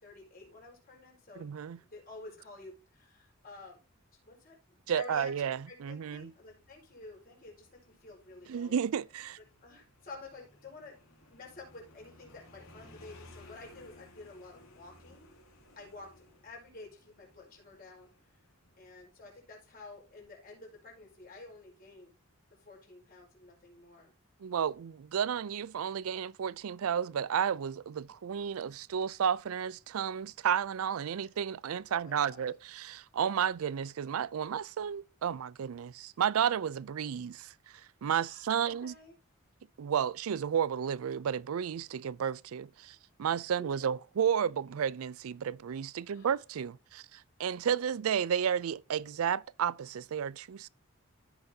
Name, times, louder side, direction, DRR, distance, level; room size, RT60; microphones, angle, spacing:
voice 1, 0.0-1.5 1.7-3.8 4.2-8.8 9.6-10.9 11.3-15.3 15.7-16.1 16.4-18.1 18.8-22.1 22.6-24.1 31.9-32.5 38.2-39.1 43.5-43.9 46.1-46.3, left 3 dB, 45° left, 4.6 m, -50 dB
voice 2, 1.4-1.8 4.9-6.3 8.5-9.4 24.4-38.9 39.8-50.7, right 8 dB, 85° right, 0.4 m, -32 dB
Motorcycle, 6.1-20.4, left 2 dB, 85° left, 2.9 m, -59 dB
15.0 x 5.8 x 2.8 m
head